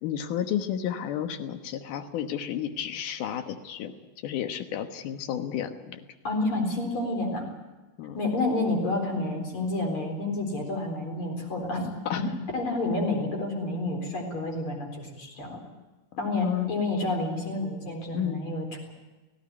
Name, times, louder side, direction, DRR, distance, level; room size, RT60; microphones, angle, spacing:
voice 1, 0.0-3.9 4.2-6.0 8.0-8.2 12.1-12.2 16.3-16.7 18.1-18.4, left 10 dB, 70° left, 7 dB, 2.8 m, -31 dB
voice 2, 6.2-7.5 8.1-15.6 16.2-18.9, left 2 dB, 40° left, 1 dB, 4.8 m, -29 dB
18.0 x 17.0 x 9.8 m, 1.2 s
omnidirectional pair, 3.8 m